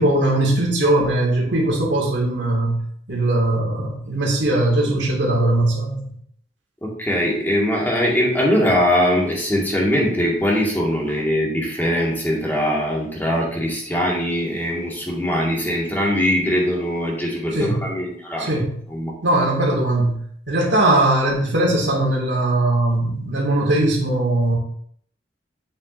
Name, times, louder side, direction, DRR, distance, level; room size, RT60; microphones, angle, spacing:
voice 1, 0.0-2.8 3.1-6.0 17.5-17.8 18.4-18.7 19.2-20.2 20.5-24.6, right 1 dB, 75° right, -1 dB, 2.1 m, -20 dB
voice 2, 6.8-18.5 18.9-19.1, equal, 10° left, -3 dB, 1.9 m, -21 dB
7.9 x 7.3 x 2.6 m, 0.63 s
head